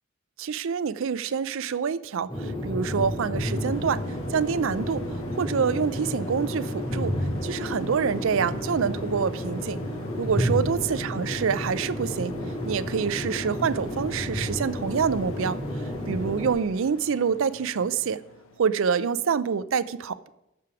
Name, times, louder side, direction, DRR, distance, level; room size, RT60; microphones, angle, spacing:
voice 1, 0.4-4.0 4.3-5.0 5.4-7.1 7.4-9.8 10.2-12.3 12.6-15.6 16.1-18.2 18.6-20.3, right 6 dB, 65° right, 15 dB, 0.4 m, -26 dB
sound 1, 2.3-16.5, equal, 25° left, 2.1 m, -31 dB
sound 2, 3.4-18.6, left 3 dB, 70° left, 1.1 m, -45 dB
13.5 x 4.9 x 6.0 m, 0.90 s
head